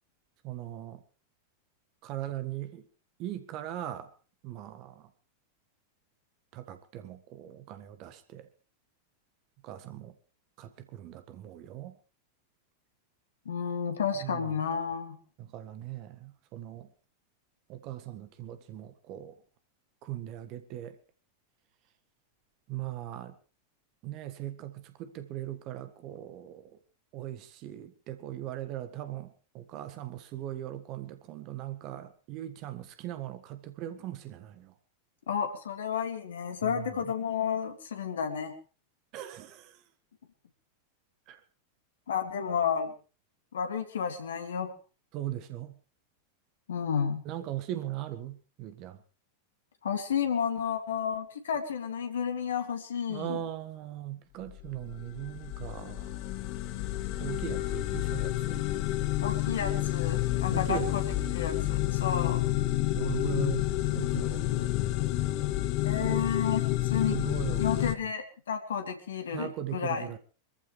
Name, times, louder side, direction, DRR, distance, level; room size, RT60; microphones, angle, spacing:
voice 1, 0.4-1.0 2.0-2.8 3.2-4.1 4.4-5.1 6.5-8.5 9.6-10.1 10.6-11.9 14.2-14.5 15.4-16.9 17.7-19.4 20.0-21.0 22.7-23.3 24.0-26.8 27.1-34.7 36.6-37.1 39.1-39.8 41.3-41.4 45.1-45.8 47.2-49.0 53.1-56.2 57.2-58.6 60.5-60.9 61.2-61.3 62.9-63.7 63.9-64.7 66.0-66.3 67.1-67.9 69.3-70.2, right 13 dB, 40° right, 1.7 m, -39 dB
voice 2, 13.5-15.2 35.3-38.5 42.1-42.9 43.5-44.7 46.7-47.2 49.8-53.4 59.2-61.0 61.3-62.4 65.8-67.2 67.6-70.1, left 7 dB, 65° left, 2.4 m, -31 dB
sound 1, 54.5-67.9, left 16 dB, 45° left, 1.3 m, -30 dB
24.5 x 14.5 x 3.3 m
figure-of-eight pair, 90°, 0 cm